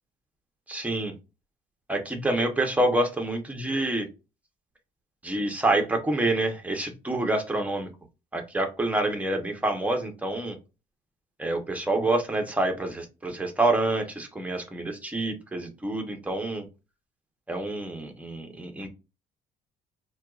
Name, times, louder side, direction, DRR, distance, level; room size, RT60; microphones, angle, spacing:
voice 1, 0.7-1.1 1.9-4.1 5.2-7.9 8.3-10.6 11.4-16.7 17.5-18.9, right 2 dB, 10° right, 3 dB, 0.8 m, -27 dB
4.3 x 2.3 x 2.4 m, 0.29 s
cardioid pair, 110°, 17 cm